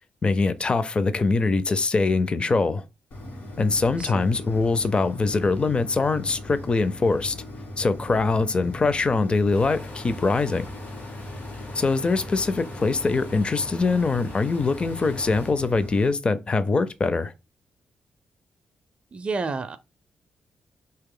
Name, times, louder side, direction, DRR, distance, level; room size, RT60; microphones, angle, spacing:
voice 1, 0.2-2.8 3.6-7.4 7.8-10.7 11.7-17.3, left 3 dB, 35° left, 0.5 m, -23 dB
sound 1, 3.1-16.1, left 1 dB, 70° left, 1.5 m, -39 dB
sound 2, 9.5-15.5, left 2 dB, 90° left, 1.4 m, -44 dB
voice 2, 19.1-19.8, right 4 dB, 40° right, 0.4 m, -30 dB
3.0 x 2.8 x 3.8 m
cardioid pair, 80°, 3 cm